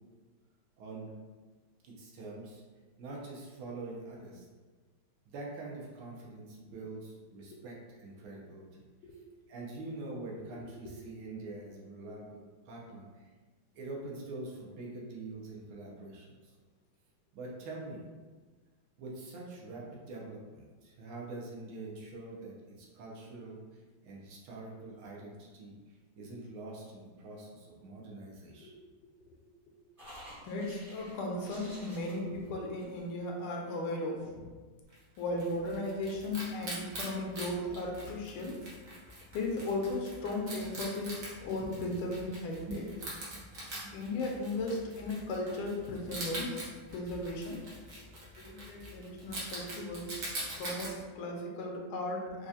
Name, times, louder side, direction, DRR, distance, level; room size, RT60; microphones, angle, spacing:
voice 1, 0.8-1.1 1.8-2.6 3.0-4.5 5.3-8.8 9.5-13.3 13.7-16.5 17.3-18.0 19.0-28.7 41.6-41.7 42.7-42.8 43.7-44.0, right 2 dB, 90° right, -2 dB, 1.7 m, -45 dB
sound 1, 30.0-33.3, equal, 25° right, 0.8 m, -51 dB
voice 2, 30.4-34.5 35.2-38.6 39.3-42.9 43.9-46.6 46.9-47.6 48.4-50.1 50.6-52.5, left 2 dB, 85° left, 0 dB, 1.5 m, -36 dB
Wild animals, 34.9-50.9, right 1 dB, 50° right, 1.1 m, -44 dB
4.6 x 2.4 x 2.7 m, 1.4 s
omnidirectional pair, 2.3 m